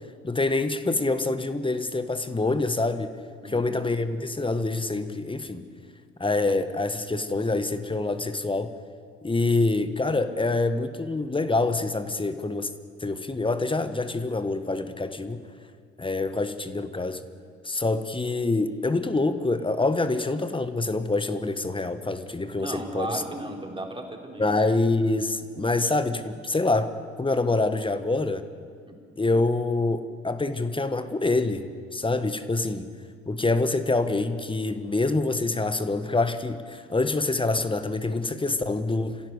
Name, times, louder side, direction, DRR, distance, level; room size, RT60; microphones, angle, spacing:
voice 1, 0.2-3.1 3.4-5.7 6.2-8.7 9.2-12.7 13.0-15.4 16.0-17.2 17.6-23.2 24.4-28.4 29.2-32.9 33.3-39.2, left 2 dB, 15° left, 11 dB, 1.5 m, -26 dB
voice 2, 3.4-3.7 22.6-24.6 28.9-29.0, right 2 dB, 15° right, 1 dB, 4.0 m, -35 dB
26.0 x 16.0 x 8.2 m, 2.1 s
figure-of-eight pair, 50°, 33 cm